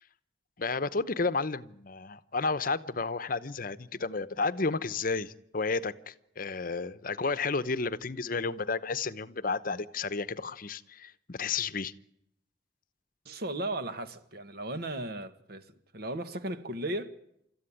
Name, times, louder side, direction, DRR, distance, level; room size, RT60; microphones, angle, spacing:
voice 1, 0.6-11.9, left 4 dB, 50° left, 0.9 m, -32 dB
voice 2, 13.3-15.7 15.9-17.1, right 1 dB, 55° right, 1.7 m, -36 dB
29.5 x 14.0 x 10.0 m
head